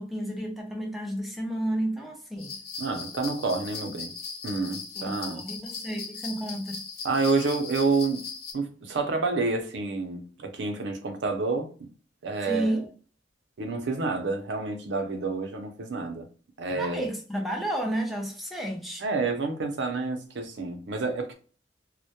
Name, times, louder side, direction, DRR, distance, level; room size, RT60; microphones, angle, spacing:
voice 1, 0.0-2.6 5.0-6.9 12.5-12.9 16.7-19.1, right 1 dB, ahead, 0.5 m, -31 dB
sound 1, 2.4-8.5, left 5 dB, 55° left, 0.5 m, -39 dB
voice 2, 2.8-4.1 4.4-5.4 7.0-8.2 8.5-11.9 12.2-12.7 13.6-16.3 16.6-17.1 19.0-21.3, right 3 dB, 75° right, 0.5 m, -29 dB
2.1 x 2.1 x 2.7 m
head